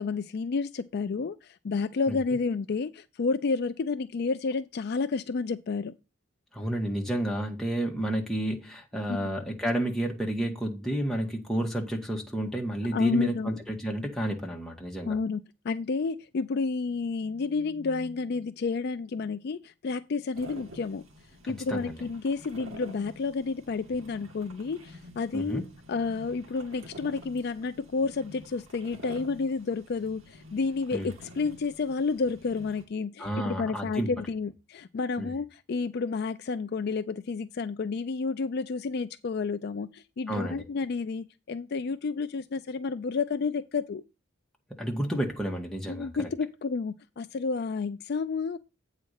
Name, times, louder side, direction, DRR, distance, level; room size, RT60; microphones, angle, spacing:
voice 1, 0.0-5.9 9.1-9.3 12.9-13.6 15.1-21.0 21.5-25.6 25.9-44.0 45.9-48.6, left 4 dB, 50° left, 0.4 m, -30 dB
voice 2, 6.5-15.2 21.4-21.9 25.3-25.6 30.9-31.1 33.2-34.1 35.2-35.4 40.3-40.6 44.8-46.3, right 1 dB, ahead, 1.5 m, -31 dB
sound 1, 20.3-32.9, equal, 85° right, 1.9 m, -49 dB
8.4 x 4.1 x 6.4 m
head